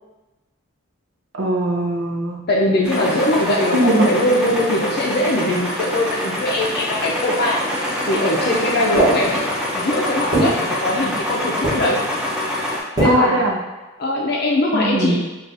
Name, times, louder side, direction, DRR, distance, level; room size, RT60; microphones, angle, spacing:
voice 1, 1.3-2.4 3.7-4.1 13.0-13.6 14.7-15.2, right 1 dB, 70° right, 0 dB, 0.6 m, -20 dB
voice 2, 2.5-7.6 8.1-9.5 9.7-12.0 13.0-13.5 14.0-15.3, left 1 dB, 50° left, -1 dB, 0.4 m, -21 dB
sound 1, 2.8-12.8, left 1 dB, 5° right, 0.5 m, -25 dB
sound 2, 9.0-9.7 10.3-11.4 11.6-12.2 13.0-13.5, right 1 dB, 20° right, 1.1 m, -22 dB
6.1 x 2.3 x 2.6 m, 1.1 s
head